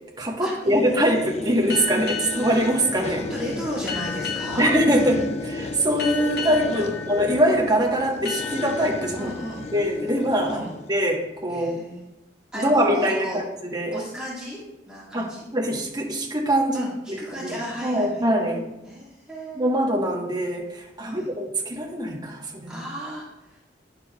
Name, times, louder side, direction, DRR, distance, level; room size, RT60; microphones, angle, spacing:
voice 1, 0.2-3.3 4.6-9.3 9.7-10.6 10.9-11.8 12.5-13.4 13.7-13.9 15.1-18.7 19.5-22.8, equal, 25° right, -1 dB, 1.3 m, -23 dB
sound 1, 0.6-11.1, left 2 dB, 40° left, 0.4 m, -34 dB
sound 2, 1.7-11.0, left 6 dB, 60° left, 1.5 m, -36 dB
voice 2, 3.1-4.7 6.7-7.0 9.2-9.6 10.5-10.8 11.5-12.1 12.5-13.4 13.9-15.5 16.7-18.2 18.9-19.8 21.0-21.3 22.7-23.6, equal, 5° right, -8 dB, 1.7 m, -34 dB
10.5 x 6.9 x 2.4 m, 0.95 s
head